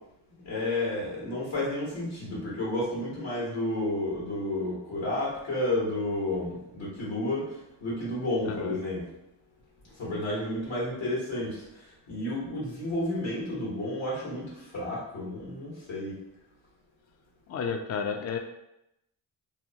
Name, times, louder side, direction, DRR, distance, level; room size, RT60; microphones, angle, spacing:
voice 1, 0.4-9.1 10.0-16.2, left 1 dB, 80° left, -6 dB, 1.2 m, -31 dB
voice 2, 8.5-8.8 17.5-18.4, left 6 dB, 35° left, 4 dB, 0.4 m, -31 dB
2.7 x 2.0 x 2.7 m, 0.85 s
supercardioid pair, 40°, 45 cm